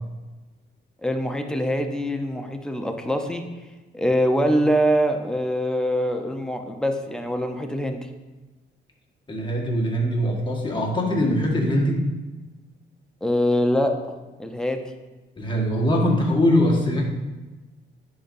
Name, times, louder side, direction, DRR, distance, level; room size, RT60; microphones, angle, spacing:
voice 1, 1.0-3.4 3.9-8.0 13.2-14.0 14.4-14.8, equal, 5° left, 4 dB, 0.7 m, -23 dB
voice 2, 9.3-12.1 15.4-17.0, equal, 25° left, -1 dB, 1.5 m, -22 dB
10.0 x 4.1 x 2.6 m, 1.2 s
cardioid pair, 90°, 20 cm